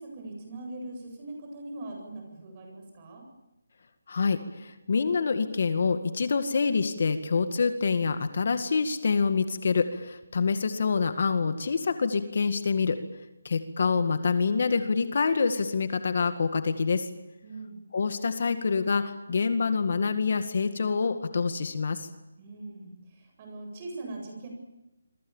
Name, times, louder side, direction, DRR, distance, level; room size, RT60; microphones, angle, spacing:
voice 1, 0.0-3.2 17.4-17.8 22.4-24.5, right 2 dB, 25° right, 2 dB, 8.0 m, -41 dB
voice 2, 4.1-13.0 13.4-17.1 17.9-22.1, left 5 dB, 50° left, 9 dB, 1.9 m, -26 dB
27.5 x 24.0 x 7.3 m, 0.96 s
hypercardioid pair, 170°, 0 cm